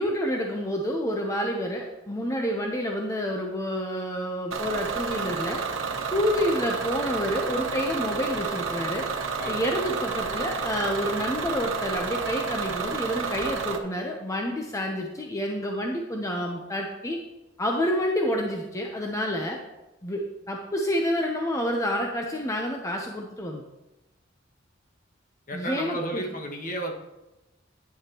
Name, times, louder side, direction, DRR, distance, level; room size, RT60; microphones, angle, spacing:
voice 1, 0.0-5.6 6.1-9.1 9.4-17.2 17.6-19.6 20.0-23.6 25.5-26.3, equal, 15° left, 1 dB, 0.8 m, -28 dB
Bus / Engine, 4.5-13.8, right 5 dB, 85° right, 1.0 m, -30 dB
voice 2, 25.5-26.9, right 1 dB, 45° left, 2 dB, 1.4 m, -32 dB
10.5 x 9.8 x 3.0 m, 1.0 s
head